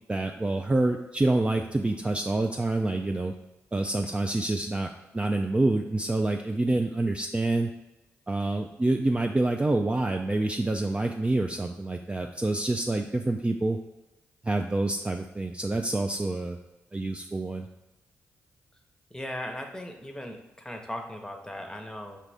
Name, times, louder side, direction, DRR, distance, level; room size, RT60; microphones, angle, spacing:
voice 1, 0.1-3.3 3.7-7.7 8.3-13.8 14.4-16.6 16.9-17.7, right 2 dB, 20° right, 3 dB, 0.3 m, -27 dB
voice 2, 19.1-22.2, left 1 dB, 10° left, 3 dB, 0.8 m, -38 dB
5.5 x 2.5 x 3.3 m, 1.0 s
hypercardioid pair, 40°, 6 cm